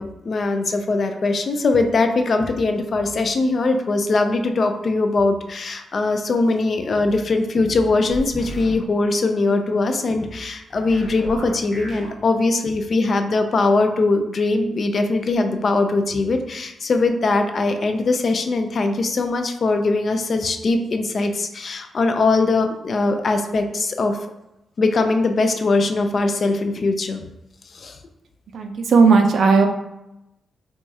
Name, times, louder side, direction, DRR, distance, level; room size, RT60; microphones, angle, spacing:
voice 1, 0.0-24.2 24.8-27.3 27.7-28.0, left 3 dB, 40° left, 6 dB, 0.3 m, -21 dB
sound 1, 8.1-8.7 10.7-12.1, equal, 20° left, 1.1 m, -34 dB
voice 2, 28.5-29.7, right 4 dB, 65° right, 5 dB, 0.4 m, -15 dB
4.6 x 2.2 x 2.7 m, 0.89 s
wide cardioid pair, 135°, 0 cm